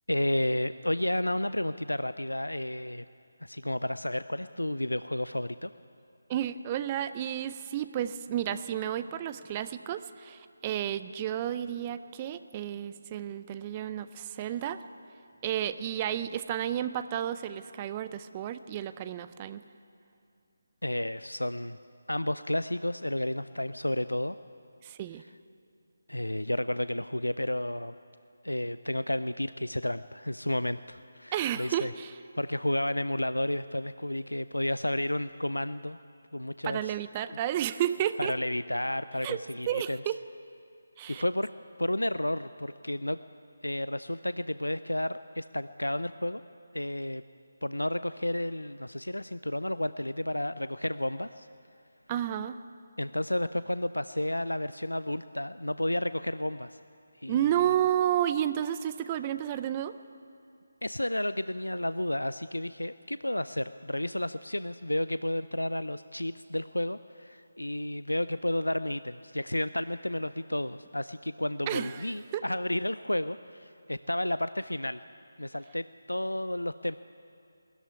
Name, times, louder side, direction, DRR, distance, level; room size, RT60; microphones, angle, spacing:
voice 1, 0.1-3.0 3.4-5.7 20.8-21.8 22.1-24.4 26.1-27.9 28.4-31.9 32.4-36.0 36.3-36.8 38.2-40.0 41.1-41.5 41.8-43.2 43.6-46.4 46.7-47.2 47.6-51.5 53.0-56.8 57.2-57.6 60.8-75.0 75.4-77.0, left 1 dB, 85° left, 14 dB, 0.5 m, -31 dB
voice 2, 6.3-14.8 15.4-19.6 24.8-25.2 31.3-32.2 36.6-38.3 39.2-39.4 39.7-40.2 41.0-41.2 52.1-52.6 57.3-60.0 71.7-72.1 72.3-72.4, right 11 dB, 20° right, 12 dB, 0.5 m, -31 dB
19.5 x 13.5 x 9.8 m, 2.5 s
figure-of-eight pair, 155°, 0 cm